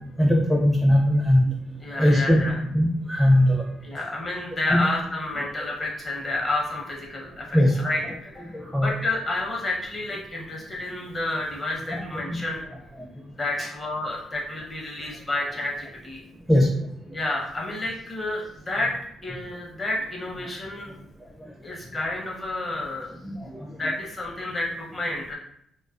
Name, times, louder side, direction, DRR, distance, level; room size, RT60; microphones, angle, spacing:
voice 1, 0.2-1.5 2.0-2.4 2.7-3.6 4.7-4.8 7.5-7.7 8.5-8.9 11.9-12.0 16.5-16.7 21.4-21.5 23.2-23.6, left 1 dB, 5° left, -2 dB, 0.5 m, -19 dB
voice 2, 1.8-2.6 3.8-12.6 13.4-16.2 17.1-18.9 19.2-21.0 21.6-23.1 23.8-25.4, left 2 dB, 30° left, -3 dB, 0.8 m, -30 dB
2.3 x 2.3 x 2.4 m, 0.70 s
cardioid pair, 90°, 0 cm